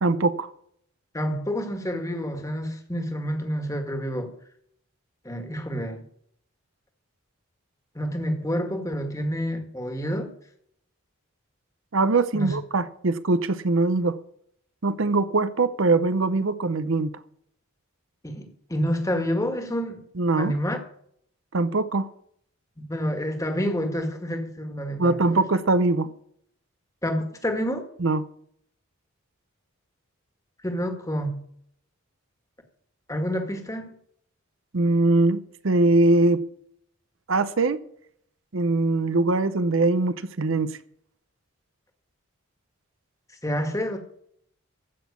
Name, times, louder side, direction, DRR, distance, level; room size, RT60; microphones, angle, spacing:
voice 1, 0.0-0.5 11.9-14.2 14.8-17.1 20.2-20.5 21.5-22.1 25.0-26.1 28.0-28.2 34.7-36.4 37.3-37.8 38.5-40.8, right 2 dB, 65° right, 0.7 m, -22 dB
voice 2, 1.1-4.3 5.2-6.0 8.0-10.3 12.3-12.6 18.2-20.0 20.4-20.8 22.8-25.2 27.0-27.8 30.6-31.4 33.1-34.0 43.4-44.0, equal, 15° left, 1.8 m, -28 dB
15.0 x 6.2 x 8.3 m
head